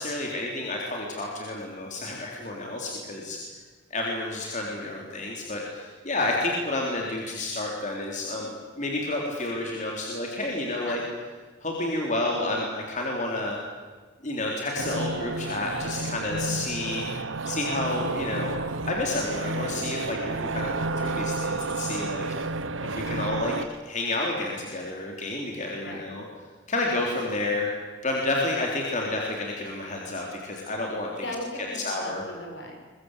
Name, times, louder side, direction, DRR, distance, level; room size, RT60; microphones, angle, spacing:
voice 1, 0.0-3.4 3.9-11.0 11.6-13.6 14.2-17.1 17.5-18.6 18.9-22.2 22.8-23.6 23.9-26.2 26.7-27.7 28.0-31.1 31.8-32.2, left 2 dB, 40° left, -1 dB, 3.8 m, -30 dB
sound 1, 14.8-23.7, right 3 dB, 80° right, 1.0 m, -31 dB
voice 2, 25.7-26.1 31.2-32.8, left 1 dB, 65° left, 2 dB, 6.5 m, -38 dB
23.5 x 22.5 x 8.2 m, 1.4 s
head